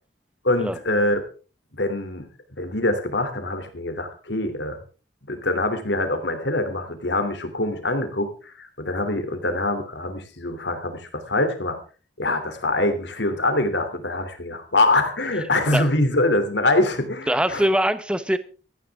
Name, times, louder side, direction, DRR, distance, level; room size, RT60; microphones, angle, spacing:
voice 1, 0.4-1.2 1.8-2.3 2.6-4.8 5.3-11.8 12.2-17.7, left 2 dB, 80° left, 8 dB, 3.0 m, -24 dB
voice 2, 17.3-18.4, equal, 5° right, 12 dB, 0.9 m, -22 dB
17.5 x 14.5 x 3.6 m, 0.36 s
head